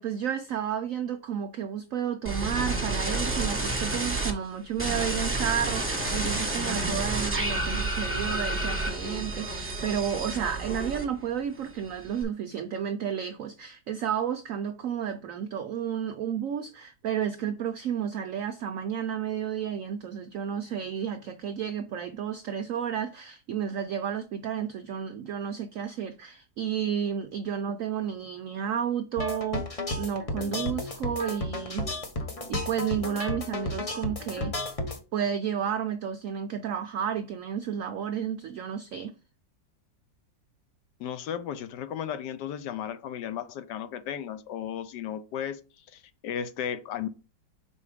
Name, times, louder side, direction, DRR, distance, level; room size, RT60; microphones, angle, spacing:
voice 1, 0.0-31.9 32.5-34.8 35.1-39.1, right 8 dB, 80° right, 0.7 m, -32 dB
sound 1, 2.2-4.3 4.8-11.3 11.6-12.2, right 2 dB, 10° right, 0.9 m, -30 dB
sound 2, 29.2-35.0, left 2 dB, 35° left, 0.6 m, -33 dB
voice 2, 41.0-47.1, left 9 dB, 75° left, 1.2 m, -35 dB
5.3 x 4.2 x 4.9 m
omnidirectional pair, 2.0 m